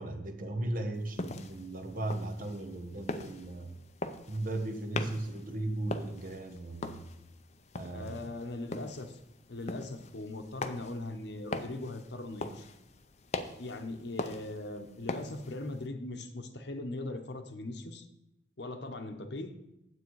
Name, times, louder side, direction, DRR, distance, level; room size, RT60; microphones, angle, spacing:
voice 1, 0.0-3.7 4.3-7.0 7.7-8.2, right 2 dB, 45° right, 4 dB, 1.2 m, -36 dB
sound 1, 0.9-15.9, left 2 dB, 35° left, 0.6 m, -42 dB
voice 2, 7.9-9.2 9.5-12.7 13.6-18.1 18.6-19.5, left 2 dB, 60° left, 7 dB, 1.0 m, -40 dB
9.7 x 8.1 x 4.7 m, 0.90 s
head